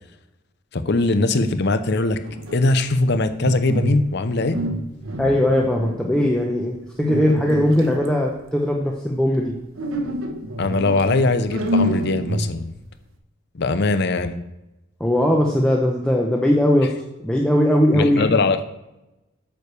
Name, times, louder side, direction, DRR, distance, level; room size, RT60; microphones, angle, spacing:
voice 1, 0.7-2.2 2.5-4.6 10.6-12.7 13.5-14.4 17.9-18.6, left 2 dB, 55° left, 10 dB, 0.6 m, -21 dB
sound 1, 2.1-4.1 4.5-6.4 7.0-8.1 9.8-12.8, equal, 75° right, 1.2 m, -27 dB
voice 2, 5.2-9.5 15.0-16.9 17.2-18.2, left 1 dB, 5° left, -1 dB, 0.8 m, -19 dB
9.1 x 4.8 x 6.8 m, 0.97 s
head